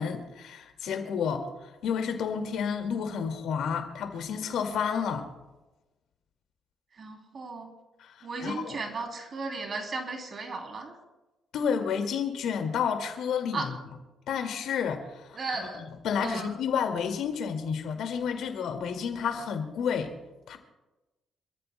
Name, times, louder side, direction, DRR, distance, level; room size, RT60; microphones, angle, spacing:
voice 1, 0.0-1.5 1.8-5.3 8.0-8.8 11.5-13.8 14.3-20.1 20.5-20.6, left 7 dB, 80° left, 4 dB, 2.1 m, -30 dB
voice 2, 7.0-7.7 8.2-10.9 13.5-13.7 15.3-15.8 16.2-16.5, right 3 dB, 45° right, 3 dB, 3.0 m, -35 dB
28.0 x 14.0 x 2.2 m, 1.1 s
cardioid pair, 90°, 0 cm